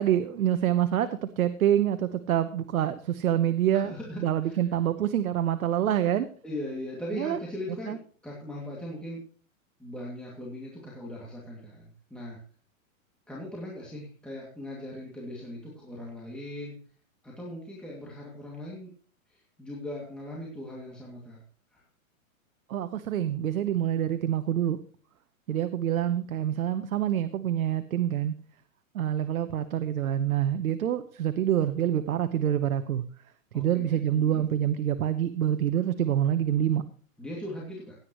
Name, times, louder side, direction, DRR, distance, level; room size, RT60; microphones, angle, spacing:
voice 1, 0.0-6.3 7.1-7.4 7.9-8.0 22.7-24.8 25.5-28.3 28.9-33.0 33.5-36.8, right 10 dB, 80° right, 10 dB, 1.1 m, -26 dB
voice 2, 3.7-4.6 6.4-9.2 9.8-12.4 13.3-16.7 17.2-18.9 19.3-21.4 21.7-21.8 33.5-34.4 37.2-37.9, left 1 dB, ahead, -5 dB, 2.4 m, -39 dB
16.5 x 9.7 x 3.1 m, 0.43 s
hypercardioid pair, 155°, 42 cm